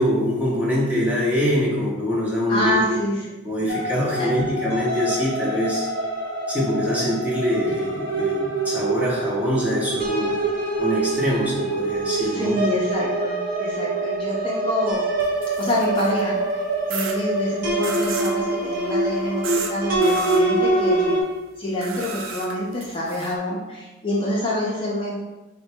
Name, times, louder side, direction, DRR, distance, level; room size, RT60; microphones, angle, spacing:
voice 1, 0.0-3.0 3.4-5.9 6.5-10.3 10.8-12.6, equal, 10° right, -6 dB, 0.8 m, -24 dB
voice 2, 2.5-3.2 3.6-3.7 4.2-4.3 12.2-15.1 15.6-16.4 16.9-21.2 21.6-25.1, left 1 dB, 25° left, -5 dB, 0.5 m, -26 dB
sound 1, 3.7-21.2, right 2 dB, 45° right, 0.8 m, -25 dB
sound 2, 15.2-16.3 16.9-17.2 17.8-18.4 19.4-19.7 20.0-20.4 21.8-23.3, right 5 dB, 90° right, 0.5 m, -33 dB
4.3 x 2.2 x 4.3 m, 1.1 s
head